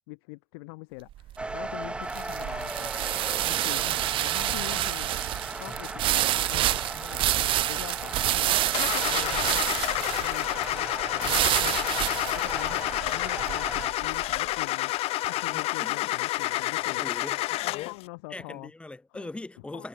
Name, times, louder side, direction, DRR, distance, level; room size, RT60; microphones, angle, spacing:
voice 1, 0.1-2.9 3.4-5.1 5.6-9.6 10.2-14.9 15.3-17.0 17.6-18.7 19.1-19.3 19.7-19.9, left 28 dB, 90° left, 4.4 m, -44 dB
sound 1, 1.1-14.4, right 14 dB, 45° right, 0.6 m, -28 dB
sound 2, 1.4-13.9, right 2 dB, 10° right, 4.1 m, -37 dB
voice 2, 4.5-4.8 15.5-16.0 17.0-17.4 18.3-19.9, left 2 dB, 10° left, 5.7 m, -41 dB
Car / Engine starting, 8.7-18.0, left 18 dB, 55° left, 0.7 m, -29 dB
cardioid pair, 135°, 12 cm